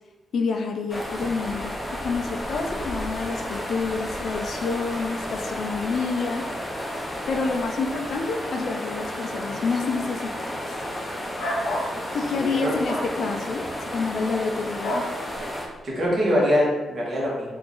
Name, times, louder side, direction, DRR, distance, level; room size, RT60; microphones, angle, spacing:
voice 1, 0.3-6.4 7.3-10.8 12.1-15.1, left 4 dB, 60° left, 3 dB, 0.4 m, -28 dB
sound 1, 0.9-15.7, equal, 10° left, 0.6 m, -32 dB
sound 2, 11.4-11.9 12.8-13.1 14.8-15.1, equal, 90° left, 0.8 m, -28 dB
voice 2, 12.3-12.7 15.8-17.6, equal, 45° right, -5 dB, 1.3 m, -23 dB
2.9 x 2.5 x 3.7 m, 1.2 s
cardioid pair, 110°, 0 cm